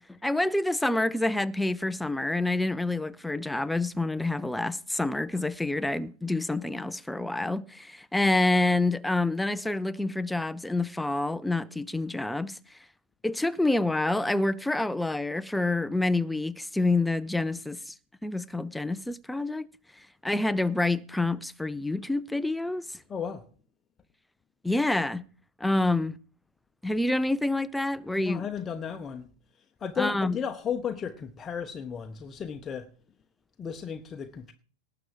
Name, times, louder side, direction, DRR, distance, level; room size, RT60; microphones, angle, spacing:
voice 1, 0.1-12.6 13.2-17.9 18.2-19.7 20.2-22.9 24.6-25.2 25.6-26.2 26.8-28.5 30.0-30.4, left 2 dB, 5° left, 0.6 m, -27 dB
voice 2, 23.1-23.4 28.2-29.3 29.8-32.9 33.6-34.5, left 7 dB, 20° left, 0.9 m, -34 dB
18.5 x 7.0 x 4.8 m
figure-of-eight pair, 90°, 0 cm